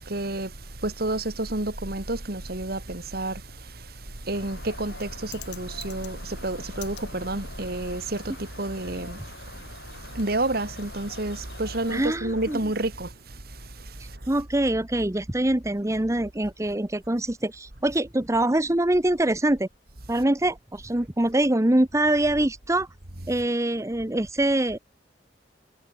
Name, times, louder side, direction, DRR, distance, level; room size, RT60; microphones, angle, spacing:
voice 1, 0.0-14.4 20.1-20.2 23.1-23.4, right 2 dB, 60° right, 2.6 m, -31 dB
Bird, 4.3-12.6, left 3 dB, 80° left, 5.1 m, -44 dB
voice 2, 11.9-12.6 14.3-19.7 20.1-22.9 23.3-24.8, right 1 dB, 20° right, 1.0 m, -24 dB
head